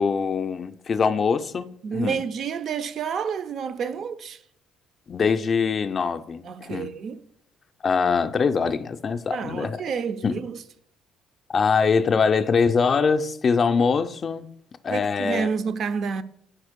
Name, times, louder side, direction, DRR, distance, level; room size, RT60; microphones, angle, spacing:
voice 1, 0.0-2.2 5.1-6.9 7.8-9.8 10.2-10.4 11.5-14.5 14.8-15.5, left 5 dB, 40° left, 0.3 m, -23 dB
voice 2, 1.8-4.4 6.4-7.2 9.3-10.6 14.9-16.2, right 6 dB, 55° right, 0.4 m, -29 dB
4.3 x 4.2 x 5.1 m
supercardioid pair, 80°, 0 cm